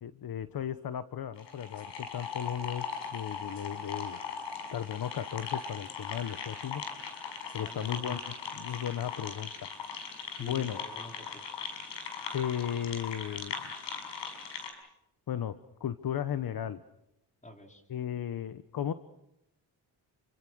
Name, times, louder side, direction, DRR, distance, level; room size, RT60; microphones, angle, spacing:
voice 1, 0.0-4.2 4.7-6.8 7.5-9.5 10.4-10.8 12.3-13.7 15.3-15.5 15.8-16.8 17.9-18.9, left 9 dB, 55° left, 12 dB, 1.2 m, -35 dB
sound 1, 1.4-14.7, left 6 dB, 90° left, 6.1 m, -39 dB
voice 2, 7.6-8.2 10.4-11.6 17.4-17.8, left 1 dB, 15° left, 3 dB, 4.8 m, -48 dB
29.5 x 24.5 x 6.5 m, 0.84 s
cardioid pair, 90°, 42 cm